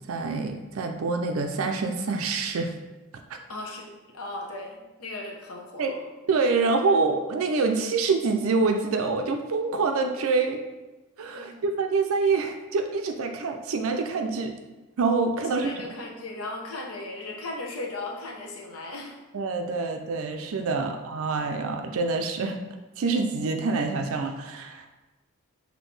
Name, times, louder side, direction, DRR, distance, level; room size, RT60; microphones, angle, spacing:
voice 1, 0.1-2.7 5.8-5.9 6.3-10.6 11.2-14.6 15.0-15.7 19.3-22.6 23.0-25.0, right 4 dB, 65° right, 5 dB, 0.4 m, -26 dB
voice 2, 3.5-6.0 11.3-11.6 15.6-19.2, left 2 dB, 80° left, 0 dB, 0.8 m, -37 dB
6.2 x 2.7 x 3.2 m, 1.1 s
head